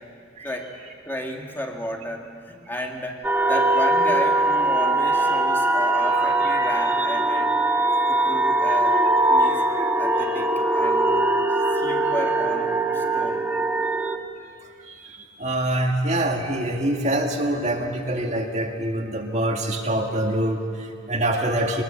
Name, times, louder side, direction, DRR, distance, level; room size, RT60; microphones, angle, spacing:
voice 1, 1.1-3.2 3.5-7.5 8.1-9.0 9.3-9.6 10.0-11.1 11.7-13.5, equal, 10° left, 1 dB, 1.8 m, -33 dB
sound 1, 3.2-14.2, right 2 dB, 10° right, 1.2 m, -21 dB
voice 2, 9.5-9.8 14.8-21.8, right 1 dB, 35° right, 2 dB, 1.9 m, -25 dB
22.5 x 20.0 x 7.4 m, 2.1 s
head